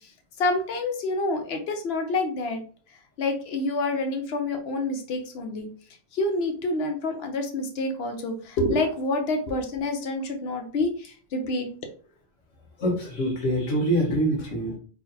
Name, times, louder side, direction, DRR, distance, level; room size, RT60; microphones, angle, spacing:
voice 1, 0.4-2.6 3.2-5.7 6.1-11.7, left 2 dB, 60° left, 5 dB, 1.0 m, -27 dB
voice 2, 12.8-14.8, right 1 dB, 85° left, -1 dB, 1.5 m, -25 dB
3.9 x 3.2 x 2.7 m, 0.41 s
omnidirectional pair, 1.3 m